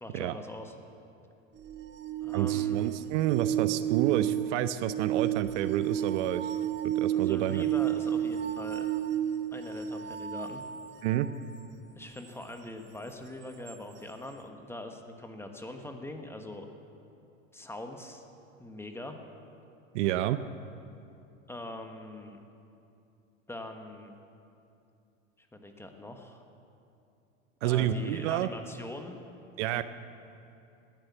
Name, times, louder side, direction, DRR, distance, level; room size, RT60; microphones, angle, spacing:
voice 1, 0.0-0.7 2.2-2.9 7.1-8.9 9.5-10.6 11.9-16.7 17.5-18.2 18.6-19.2 21.5-22.4 23.5-24.1 25.4-26.4 27.6-29.2 29.7-29.8, left 1 dB, 5° left, 5 dB, 1.4 m, -42 dB
sound 1, 1.6-11.4 13.7-13.8, right 11 dB, 30° right, 1.2 m, -31 dB
voice 2, 2.3-6.5 6.8-7.7 11.0-11.3 19.9-20.4 27.6-28.5 29.6-29.8, right 12 dB, 65° right, 13 dB, 0.7 m, -29 dB
17.5 x 10.5 x 7.1 m, 2.6 s
hypercardioid pair, 100°, 39 cm